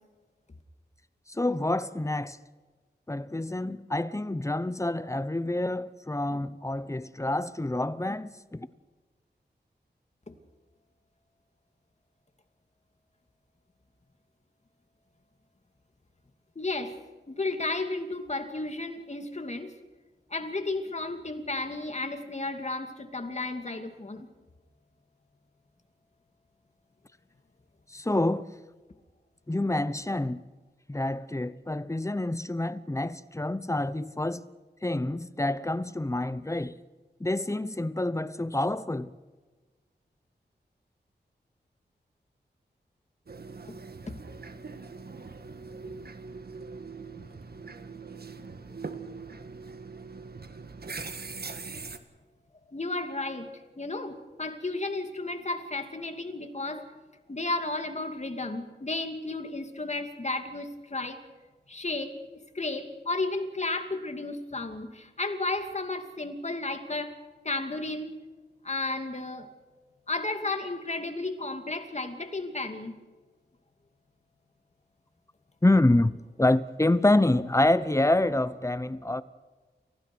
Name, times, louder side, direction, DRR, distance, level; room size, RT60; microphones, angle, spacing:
voice 1, 1.3-2.4 3.1-8.7 27.9-28.5 29.5-30.4 30.9-34.5 34.8-36.8 37.2-39.1 75.6-76.1 76.4-79.2, left 2 dB, 15° left, 0.9 m, -27 dB
voice 2, 16.6-16.9 17.3-19.7 20.3-24.3 44.1-44.2 52.7-53.5 53.8-56.9 57.3-61.2 61.7-62.2 62.5-67.2 67.4-68.1 68.6-69.5 70.1-72.9, left 2 dB, 40° left, 2.6 m, -33 dB
sound 1, 43.3-52.0, right 4 dB, 60° right, 1.6 m, -42 dB
29.5 x 16.0 x 6.2 m
wide cardioid pair, 65°, 18 cm